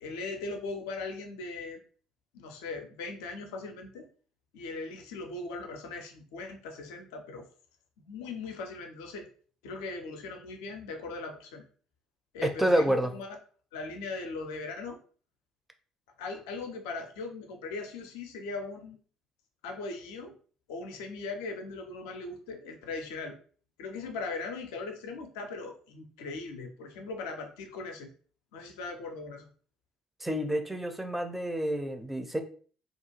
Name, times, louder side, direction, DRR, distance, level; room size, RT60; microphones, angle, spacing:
voice 1, 0.0-1.8 2.3-4.1 4.5-7.5 8.1-9.3 9.6-11.6 12.3-13.4 13.7-15.0 16.2-19.0 19.6-20.4 20.7-23.4 23.8-28.1 28.5-29.5, left 3 dB, 70° left, 3 dB, 0.4 m, -39 dB
voice 2, 12.6-13.1 30.2-32.4, right 1 dB, 5° right, 6 dB, 0.4 m, -28 dB
2.4 x 2.2 x 3.0 m, 0.43 s
figure-of-eight pair, 50°, 2 cm